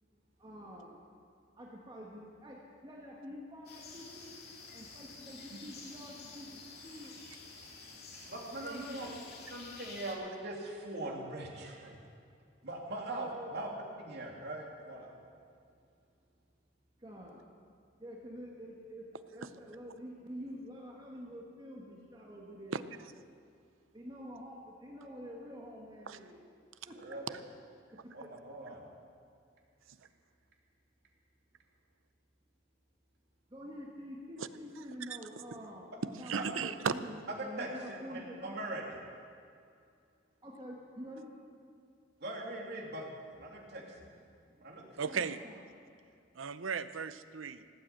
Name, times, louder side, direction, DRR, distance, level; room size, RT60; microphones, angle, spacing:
voice 1, 0.4-1.0 1.6-4.4 4.7-7.2 8.6-9.2 13.1-13.5 17.0-17.4 18.0-19.0 19.3-22.9 23.9-26.4 26.9-27.4 28.2-28.8 33.5-35.9 36.2-38.6 40.4-41.3 44.2-44.3 44.6-44.8 45.1-45.6, equal, 25° right, -3 dB, 1.7 m, -47 dB
sound 1, 3.7-10.1, left 4 dB, 55° left, 2.6 m, -50 dB
voice 2, 8.3-9.1 9.5-11.9 12.6-13.7 14.1-15.3 27.0-27.2 28.1-28.8 36.3-36.4 37.6-38.8 42.2-43.0 43.4-43.8 44.6-44.8, right 2 dB, 55° right, -1 dB, 2.9 m, -41 dB
voice 3, 36.3-36.9 45.0-45.4 46.4-47.7, right 6 dB, 90° right, 13 dB, 0.7 m, -35 dB
18.0 x 9.0 x 8.5 m, 2.4 s
head